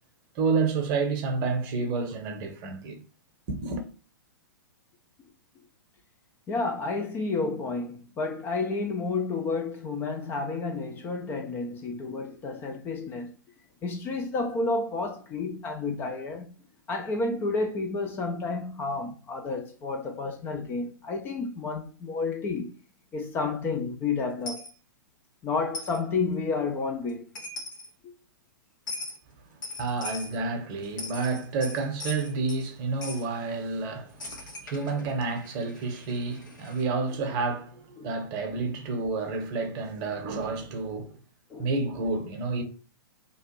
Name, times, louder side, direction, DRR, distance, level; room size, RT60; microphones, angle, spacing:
voice 1, 0.3-3.0 3.5-3.8 29.8-41.2 41.6-42.6, right 4 dB, 30° right, 0.8 m, -30 dB
voice 2, 6.5-13.3 13.8-16.5 16.9-22.7 23.1-24.6 25.4-27.2 28.0-28.1 38.0-38.1 41.5-41.7, left 3 dB, 20° left, 0.4 m, -30 dB
Coin (dropping), 24.5-24.7 25.7-26.0 27.1-27.2 27.4-27.9 28.9-29.2 29.6-30.4 30.8-32.7 33.0-33.3 34.2-36.8, left 2 dB, 60° left, 1.3 m, -39 dB
2.9 x 2.4 x 4.3 m
figure-of-eight pair, 110°, 11 cm